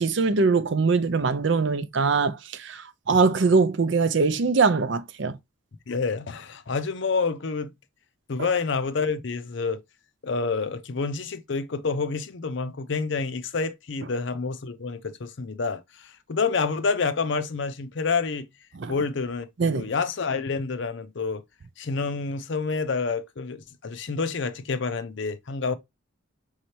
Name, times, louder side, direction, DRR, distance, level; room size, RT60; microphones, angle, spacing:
voice 1, 0.0-5.4 18.7-18.9 19.6-19.9, right 4 dB, 60° right, 0.5 m, -22 dB
voice 2, 5.9-7.7 8.3-9.8 10.2-18.5 18.9-21.4 21.8-25.8, left 4 dB, 60° left, 0.6 m, -28 dB
5.3 x 3.2 x 2.8 m
head